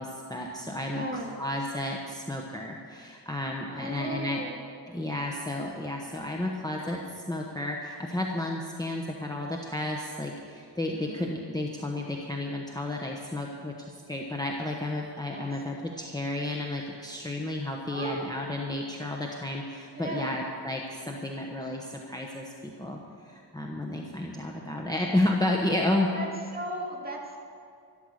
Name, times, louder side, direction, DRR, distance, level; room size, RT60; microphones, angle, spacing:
voice 1, 0.0-1.0 1.4-4.4 4.9-26.1, left 1 dB, 10° left, -1 dB, 1.0 m, -32 dB
voice 2, 0.9-1.4 3.7-4.6 11.0-11.3 15.3-15.5 17.9-18.3 19.9-20.3 26.1-26.3 26.5-27.4, right 1 dB, 20° right, -2 dB, 2.3 m, -36 dB
12.5 x 12.5 x 6.5 m, 2.3 s
wide cardioid pair, 135°, 41 cm